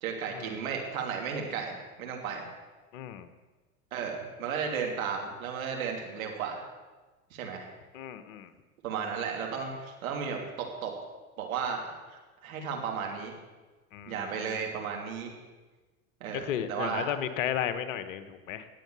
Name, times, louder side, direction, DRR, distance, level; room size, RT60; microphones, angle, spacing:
voice 1, 0.0-2.5 3.9-6.6 7.3-7.7 8.8-10.9 11.4-13.3 14.1-15.3 16.2-17.1, right 6 dB, 65° right, 1 dB, 3.0 m, -34 dB
voice 2, 2.9-3.3 7.9-8.5 13.9-14.7 16.3-18.7, left 10 dB, 60° left, 12 dB, 1.2 m, -34 dB
18.5 x 7.7 x 6.8 m, 1.3 s
figure-of-eight pair, 80°, 44 cm